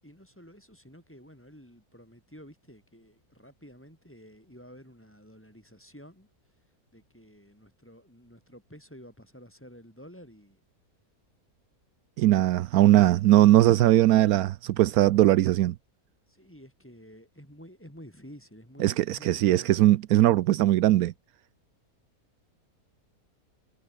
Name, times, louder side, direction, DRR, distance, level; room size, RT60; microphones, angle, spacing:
voice 1, 0.0-6.3 6.9-10.6 16.3-19.9, equal, 10° left, 7.0 m, -51 dB
voice 2, 12.2-15.7 18.8-21.1, right 14 dB, 80° right, 1.1 m, -20 dB
omnidirectional pair, 1.6 m